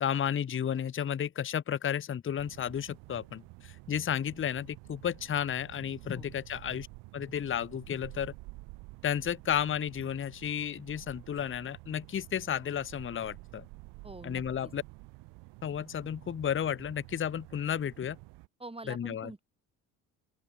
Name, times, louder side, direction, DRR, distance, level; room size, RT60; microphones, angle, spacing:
voice 1, 0.0-6.9 7.1-8.3 9.0-13.6 14.2-14.8 15.6-18.2 18.9-19.3, left 9 dB, 30° left, 0.8 m, -32 dB
sound 1, 2.4-18.5, right 24 dB, 75° right, 7.0 m, -50 dB
voice 2, 14.0-14.7 18.6-19.4, right 2 dB, 15° right, 3.6 m, -46 dB
open air
hypercardioid pair, 60°, 42 cm